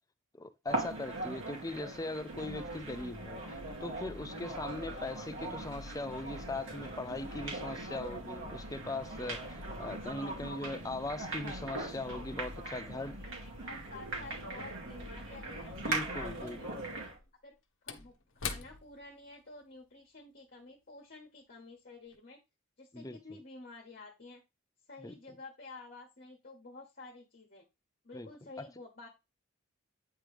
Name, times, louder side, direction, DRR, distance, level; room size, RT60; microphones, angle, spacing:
voice 1, 0.3-13.2 15.8-16.8 22.9-23.2 25.0-25.2 28.1-28.3 28.6-28.7, left 2 dB, 15° left, 0.5 m, -40 dB
sound 1, 0.7-17.2, right 2 dB, 70° right, 2.3 m, -40 dB
sound 2, 2.2-16.6, left 1 dB, 85° right, 2.3 m, -51 dB
voice 2, 12.6-16.9 17.4-17.5 17.8-22.4 22.8-24.4 24.9-27.6 28.0-29.1, left 3 dB, 50° left, 1.3 m, -51 dB
Slam / Wood, 15.4-15.5 17.0-21.7 22.0-22.2, left 6 dB, 75° left, 0.9 m, -46 dB
8.9 x 3.3 x 3.3 m
head